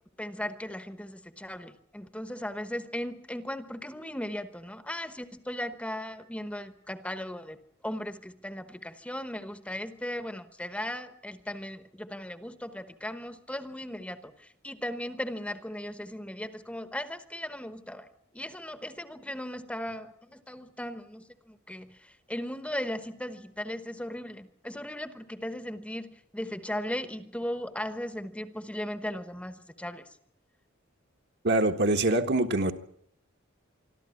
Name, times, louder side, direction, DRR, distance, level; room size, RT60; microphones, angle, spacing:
voice 1, 0.2-7.6 7.8-18.1 18.3-30.0, left 1 dB, 5° left, 10 dB, 1.1 m, -37 dB
voice 2, 31.4-32.7, right 2 dB, 55° right, 5 dB, 1.6 m, -24 dB
25.5 x 13.0 x 9.7 m, 0.67 s
head